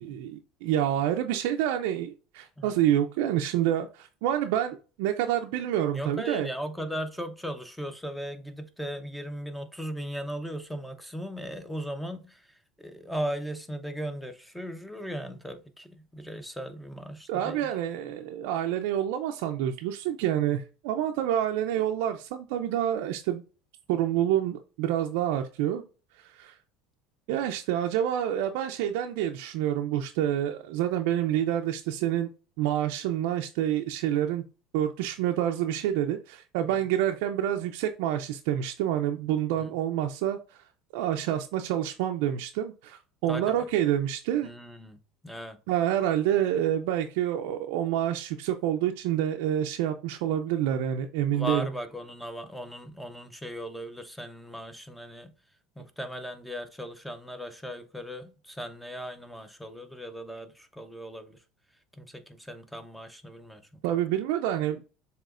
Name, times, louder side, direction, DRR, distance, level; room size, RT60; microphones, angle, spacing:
voice 1, 0.0-6.5 17.3-23.4 23.9-25.8 26.2-26.5 27.3-32.3 32.6-34.4 34.7-40.4 40.9-44.5 45.7-51.7 63.8-64.8, right 11 dB, 75° right, 0.4 m, -28 dB
voice 2, 5.9-17.7 39.6-39.8 43.3-43.7 44.4-45.0 45.2-45.6 51.3-55.3 55.8-61.4 61.9-63.8, equal, 5° left, 0.8 m, -37 dB
7.3 x 2.9 x 2.4 m
supercardioid pair, 95°, 0 cm